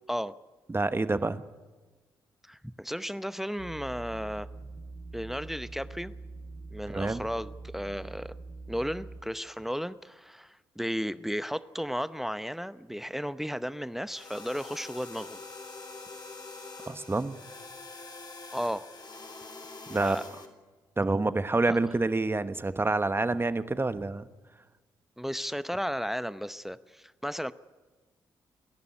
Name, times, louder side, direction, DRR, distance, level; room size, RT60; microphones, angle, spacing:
voice 1, 0.7-1.4 6.9-7.3 16.9-17.4 19.9-20.2 21.0-24.3, right 2 dB, 20° right, 12 dB, 1.3 m, -27 dB
voice 2, 2.5-4.5 5.1-6.1 6.7-8.3 8.7-15.4 18.5-18.9 20.0-20.2 25.2-27.5, equal, 5° right, 15 dB, 0.8 m, -34 dB
sound 1, 3.6-9.2, right 3 dB, 60° right, 3.6 m, -44 dB
sound 2, 14.1-20.5, left 3 dB, 40° left, 3.9 m, -45 dB
29.5 x 11.0 x 9.9 m, 1.3 s
hypercardioid pair, 40°, 11 cm